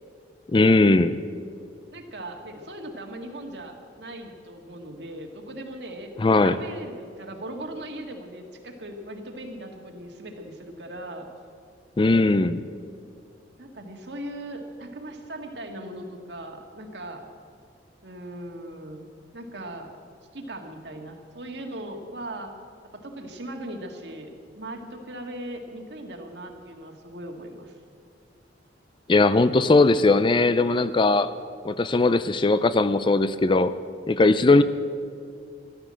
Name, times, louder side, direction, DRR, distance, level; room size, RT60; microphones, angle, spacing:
voice 1, 0.5-1.2 6.2-6.6 12.0-12.6 29.1-31.3 31.6-33.7 34.1-34.6, left 3 dB, 25° left, 13 dB, 0.4 m, -19 dB
voice 2, 1.9-11.3 13.6-17.2 18.0-19.0 19.3-19.9 20.3-22.5 22.9-27.8, right 1 dB, 65° right, 3 dB, 1.9 m, -39 dB
15.0 x 12.0 x 7.6 m, 2.2 s
head